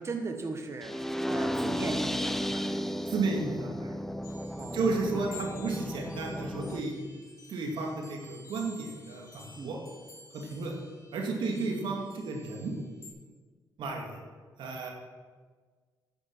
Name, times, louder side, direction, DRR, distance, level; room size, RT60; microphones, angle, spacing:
voice 1, 0.0-2.8 4.5-5.3 9.5-9.8, right 3 dB, 35° right, 4 dB, 1.2 m, -38 dB
sound 1, 0.8-6.8, equal, 5° left, 0.6 m, -34 dB
voice 2, 3.1-4.0 4.7-7.0 7.5-9.8 10.3-10.7 11.1-12.8 13.8-14.2 14.6-14.9, right 3 dB, 80° right, 1 dB, 2.3 m, -32 dB
sound 2, 4.2-13.1, left 2 dB, 45° left, 3.6 m, -52 dB
10.5 x 7.9 x 7.6 m, 1.5 s
cardioid pair, 80°, 8 cm